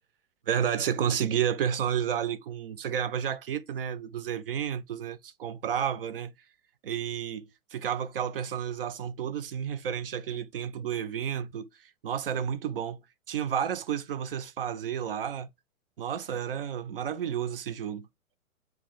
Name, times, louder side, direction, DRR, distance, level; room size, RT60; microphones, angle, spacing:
voice 1, 0.5-6.3 6.8-11.7 12.0-13.0 13.3-15.5 16.0-18.1, right 8 dB, 45° right, 0.4 m, -31 dB
4.6 x 2.1 x 3.7 m
figure-of-eight pair, 115°, 42 cm